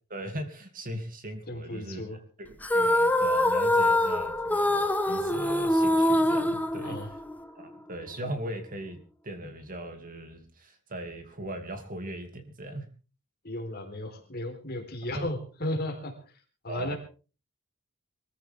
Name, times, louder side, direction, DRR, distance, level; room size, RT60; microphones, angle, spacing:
voice 1, 0.1-2.0 2.4-7.0 7.5-9.0 9.2-12.8 15.1-15.3 16.7-16.9, right 1 dB, 40° right, 6 dB, 2.6 m, -39 dB
voice 2, 1.5-2.2 6.8-7.1 13.4-16.1 16.6-17.0, left 1 dB, 50° left, 3 dB, 3.9 m, -34 dB
sound 1, 2.6-7.4, left 1 dB, 10° left, 1.1 m, -24 dB
23.5 x 14.5 x 3.6 m, 0.36 s
head